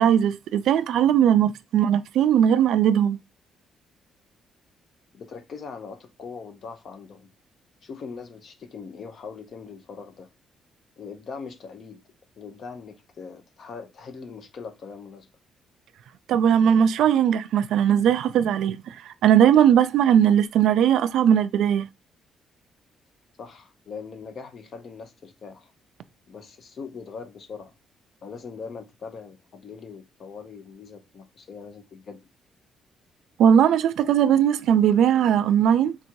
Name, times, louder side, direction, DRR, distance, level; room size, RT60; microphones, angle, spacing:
voice 1, 0.0-3.2 16.3-19.0 19.2-21.9 33.4-36.0, right 9 dB, 75° right, 0.3 m, -19 dB
voice 2, 5.1-7.3 7.8-10.3 11.0-12.0 12.4-15.3 23.4-25.7 26.3-27.7 28.2-32.2, left 5 dB, 40° left, 0.7 m, -41 dB
3.6 x 2.6 x 4.4 m
cardioid pair, 175°, 0 cm